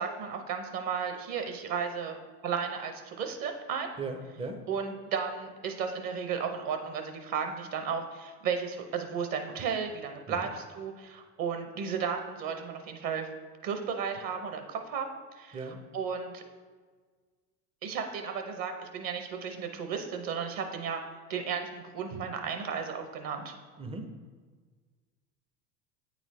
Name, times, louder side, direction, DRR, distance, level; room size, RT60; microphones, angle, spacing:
voice 1, 0.0-2.2 2.4-3.9 4.7-13.3 13.6-16.4 17.8-21.0 21.3-23.5, right 6 dB, 45° right, 5 dB, 0.7 m, -34 dB
voice 2, 4.0-4.6 10.3-10.4 15.5-15.8 23.8-24.1, right 3 dB, 15° right, 6 dB, 0.4 m, -37 dB
8.7 x 4.0 x 3.1 m, 1.5 s
hypercardioid pair, 85°, 49 cm